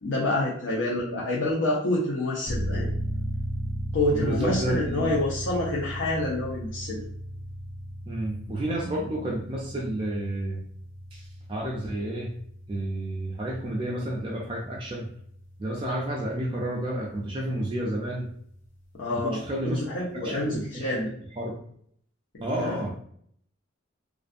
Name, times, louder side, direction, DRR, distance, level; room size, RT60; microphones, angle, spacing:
voice 1, 0.0-2.9 3.9-7.0 18.9-19.4 19.7-21.1 22.6-22.8, left 1 dB, 80° left, -4 dB, 0.6 m, -27 dB
sound 1, 2.5-16.9, equal, 35° left, 0.7 m, -36 dB
voice 2, 4.1-5.1 8.1-10.6 11.1-12.3 12.7-15.1 15.6-18.3 19.1-19.8 20.1-20.9 21.4-21.6 22.4-22.9, right 1 dB, 25° right, -2 dB, 0.4 m, -31 dB
2.5 x 2.3 x 2.5 m, 0.65 s
head